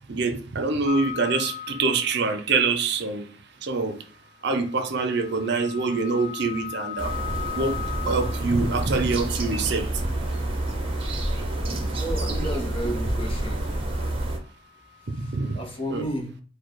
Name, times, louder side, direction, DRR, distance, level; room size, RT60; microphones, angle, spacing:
voice 1, 0.1-3.3 3.6-4.0 4.4-7.2 7.5-7.8 8.1-9.9 15.1-15.6 15.9-16.1, right 4 dB, 60° right, 0.6 m, -25 dB
sound 1, 0.9-2.5 4.5-8.8 14.8-15.6, left 10 dB, 50° left, 0.3 m, -38 dB
sound 2, 7.0-14.4, right 1 dB, 30° right, 0.9 m, -28 dB
voice 2, 11.9-13.6 15.5-16.3, right 1 dB, 30° left, 0.9 m, -31 dB
4.5 x 2.2 x 4.6 m
head